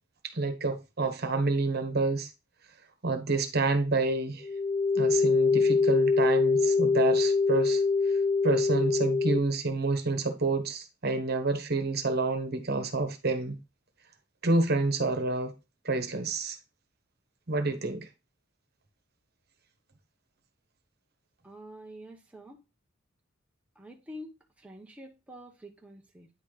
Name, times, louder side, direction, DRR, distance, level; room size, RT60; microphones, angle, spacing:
voice 1, 0.3-2.3 3.0-4.5 4.9-7.8 8.4-13.5 14.4-15.5 15.8-16.6 17.5-18.1, right 3 dB, 50° right, 1.2 m, -28 dB
sound 1, 4.4-9.4, left 4 dB, 25° left, 0.4 m, -24 dB
voice 2, 21.4-22.6 23.8-26.3, equal, 5° right, 0.9 m, -47 dB
9.4 x 4.1 x 3.3 m
head